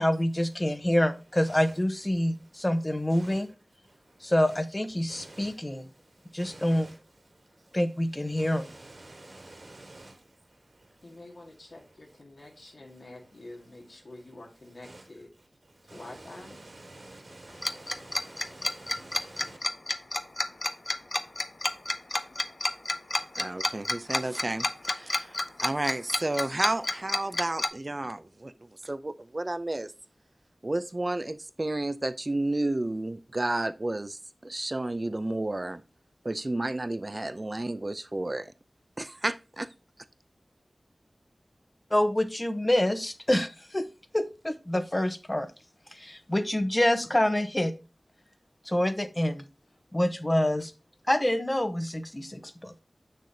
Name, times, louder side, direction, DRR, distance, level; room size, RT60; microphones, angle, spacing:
voice 1, 0.0-3.5 4.2-5.9 6.3-6.9 7.7-8.7 41.9-43.9 44.1-45.5 45.9-47.7 48.7-49.5 49.9-50.7 51.1-52.8, left 1 dB, 25° left, 0.9 m, -26 dB
voice 2, 1.4-1.7 3.1-3.5 3.8-4.6 5.1-7.0 7.2-7.8 8.3-11.2 12.4-12.5 14.8-15.1 15.4-19.6, right 2 dB, 65° right, 2.8 m, -50 dB
voice 3, 11.0-15.3 15.9-16.6, left 2 dB, 80° left, 1.9 m, -47 dB
Tick-tock, 17.6-27.7, left 2 dB, 50° left, 0.5 m, -29 dB
voice 4, 23.4-28.5 28.8-29.9 30.6-35.8 36.2-38.5 39.0-39.7, right 2 dB, 40° right, 0.6 m, -31 dB
6.6 x 6.4 x 2.8 m
cardioid pair, 40°, 0 cm